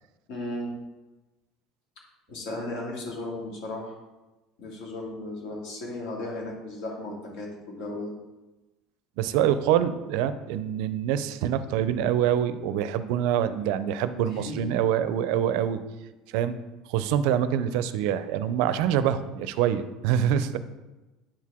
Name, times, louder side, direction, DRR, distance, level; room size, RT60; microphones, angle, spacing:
voice 1, 0.3-0.7 2.3-4.0 4.6-8.1 14.2-14.5, left 1 dB, 60° left, -2 dB, 2.2 m, -35 dB
voice 2, 9.2-15.8 16.3-16.6 16.9-20.6, right 10 dB, 70° right, 13 dB, 0.4 m, -25 dB
8.8 x 4.7 x 3.6 m, 1.1 s
cardioid pair, 155°, 0 cm